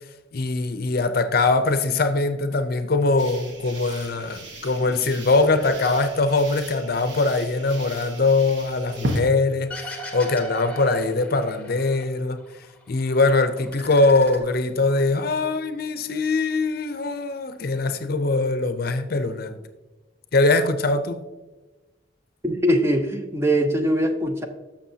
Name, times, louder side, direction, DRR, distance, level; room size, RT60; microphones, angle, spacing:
voice 1, 0.3-12.4 12.9-19.6 20.3-21.2, left 3 dB, 50° left, 0.6 m, -22 dB
sound 1, 3.2-9.2, right 1 dB, 65° right, 1.3 m, -35 dB
sound 2, 9.7-12.0 12.4-13.2 13.5-15.1, right 2 dB, 10° left, 1.0 m, -37 dB
voice 2, 22.4-24.5, equal, 15° right, 0.6 m, -22 dB
11.5 x 6.6 x 2.8 m
head